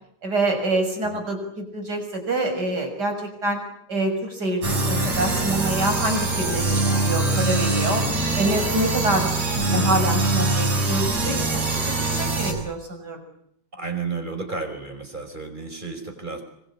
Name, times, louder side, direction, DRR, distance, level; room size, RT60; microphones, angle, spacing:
voice 1, 0.2-3.6 3.9-6.7 7.1-8.0 8.4-9.3 9.7-11.4 11.7-13.2, right 1 dB, 30° right, 6 dB, 6.7 m, -26 dB
sound 1, 4.6-12.5, right 3 dB, 55° right, 7.8 m, -23 dB
voice 2, 13.7-16.4, right 4 dB, 15° right, 7 dB, 5.1 m, -32 dB
27.5 x 23.5 x 8.8 m, 0.72 s
omnidirectional pair, 3.6 m